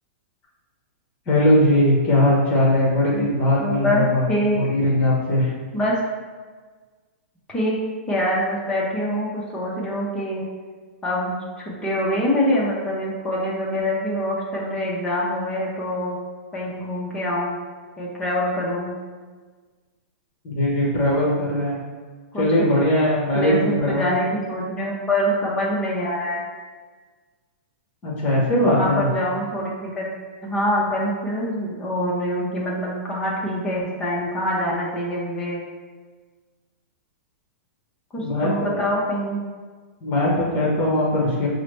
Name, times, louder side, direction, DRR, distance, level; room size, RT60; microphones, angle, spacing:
voice 1, 1.3-4.2 4.5-5.5 20.4-21.8 22.4-24.1 28.0-29.1 38.2-38.9 40.0-41.5, left 1 dB, 25° left, -4 dB, 1.0 m, -20 dB
voice 2, 3.6-4.6 5.7-6.0 7.5-7.8 8.1-10.5 11.0-16.2 16.5-17.6 18.0-18.9 22.3-22.7 23.3-26.4 28.7-30.1 30.4-35.6 38.1-39.4, equal, 10° left, -5 dB, 0.7 m, -25 dB
5.4 x 2.0 x 3.2 m, 1.5 s
supercardioid pair, 165°, 7 cm